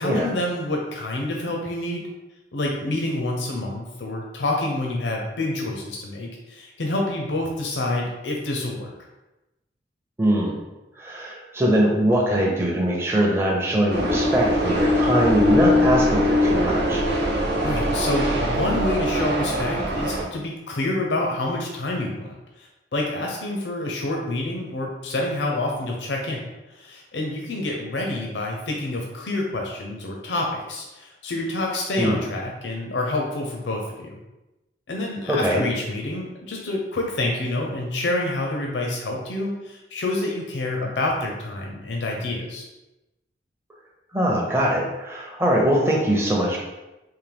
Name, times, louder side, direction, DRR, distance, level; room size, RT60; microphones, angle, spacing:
voice 1, 0.0-2.1 2.5-8.9 17.6-26.4 26.7-34.1 34.9-42.7, left 2 dB, 85° left, 0 dB, 0.6 m, -27 dB
voice 2, 10.2-10.6 11.0-17.0 32.0-32.2 35.3-35.6 44.1-46.6, right 1 dB, 15° right, -2 dB, 0.5 m, -22 dB
sound 1, 13.9-20.2, left 1 dB, 65° right, 0.7 m, -22 dB
3.8 x 2.7 x 3.4 m, 1.0 s
head